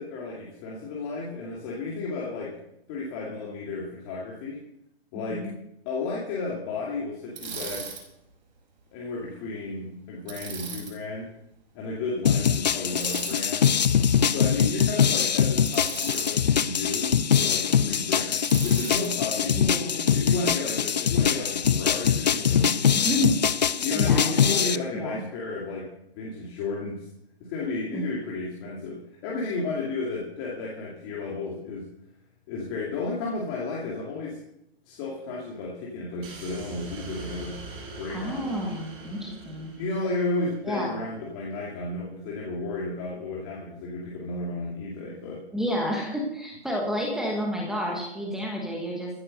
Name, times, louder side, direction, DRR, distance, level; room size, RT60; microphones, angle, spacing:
voice 1, 0.0-2.5 2.9-4.6 5.1-5.5 5.9-8.0 8.9-11.3 11.7-13.7 14.3-23.2 23.8-25.9 26.2-27.1 27.4-31.9 32.5-34.4 34.9-37.6 37.9-38.6 39.5-45.4, left 3 dB, 20° left, -4 dB, 2.5 m, -33 dB
Bicycle, 7.3-8.0 10.3-10.9 12.9-13.4 15.7-16.3 18.4-19.1, right 6 dB, 45° right, 5.5 m, -37 dB
sound 1, 12.3-24.8, left 8 dB, 40° left, 0.5 m, -23 dB
voice 2, 19.5-20.1 22.9-24.6 24.9-25.2 27.9-28.1 38.1-39.7 40.6-41.0 45.5-49.1, equal, ahead, -1 dB, 1.3 m, -30 dB
sound 2, 36.2-40.6, right 3 dB, 15° right, 3.5 m, -42 dB
14.5 x 10.0 x 6.5 m, 0.79 s
hypercardioid pair, 160°, 32 cm